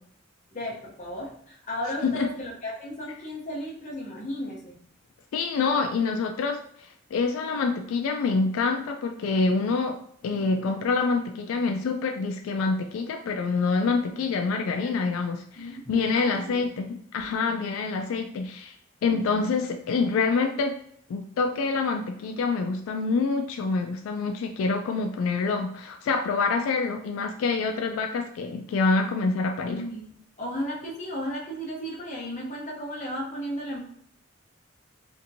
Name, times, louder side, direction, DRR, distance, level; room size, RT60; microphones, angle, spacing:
voice 1, 0.5-4.8 14.7-15.1 15.6-16.7 19.0-19.3 29.7-33.8, equal, 35° left, -3 dB, 0.7 m, -35 dB
voice 2, 5.3-6.6 7.1-10.0 10.2-18.7 19.0-20.7 21.1-29.8, left 4 dB, 85° left, 5 dB, 0.3 m, -26 dB
2.8 x 2.5 x 2.6 m, 0.67 s
head